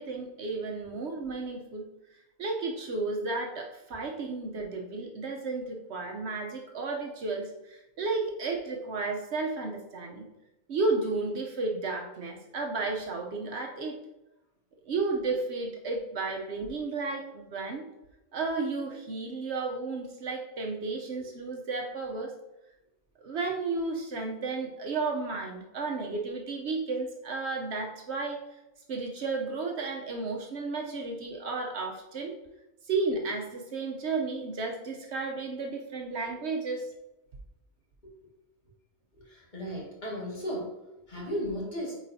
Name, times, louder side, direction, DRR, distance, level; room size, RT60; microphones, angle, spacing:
voice 1, 0.0-1.9 2.4-10.3 10.7-14.0 14.9-17.9 18.3-22.3 23.2-28.4 28.9-32.4 32.9-36.9, right 3 dB, 65° right, 1 dB, 1.0 m, -33 dB
voice 2, 39.1-40.7 41.1-42.0, equal, 40° left, -4 dB, 2.0 m, -35 dB
8.7 x 4.1 x 2.7 m, 0.94 s
omnidirectional pair, 1.3 m